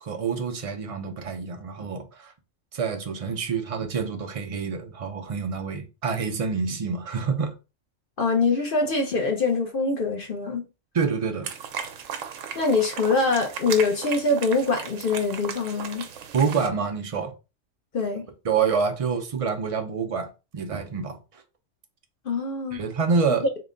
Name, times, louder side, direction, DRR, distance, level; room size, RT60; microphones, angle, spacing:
voice 1, 0.0-2.3 2.7-7.5 10.9-11.5 16.3-17.3 18.4-21.4 22.7-23.5, right 5 dB, 50° right, 0.4 m, -27 dB
voice 2, 8.2-10.6 12.5-16.0 17.9-18.2 22.2-22.8, left 3 dB, 50° left, 0.8 m, -24 dB
sound 1, 11.4-16.7, right 7 dB, 90° right, 1.0 m, -36 dB
3.8 x 2.1 x 3.7 m
omnidirectional pair, 1.3 m